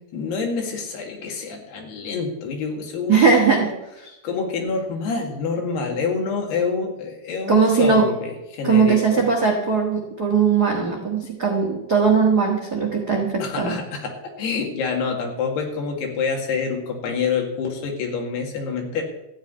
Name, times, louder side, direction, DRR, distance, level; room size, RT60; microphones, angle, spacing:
voice 1, 0.1-3.7 4.2-9.2 13.4-19.0, left 5 dB, 90° left, 2 dB, 4.2 m, -27 dB
voice 2, 3.1-3.7 4.0-4.1 7.5-8.1 8.6-13.8, right 5 dB, 70° right, 1 dB, 0.9 m, -19 dB
14.0 x 5.8 x 9.4 m, 0.91 s
omnidirectional pair, 4.5 m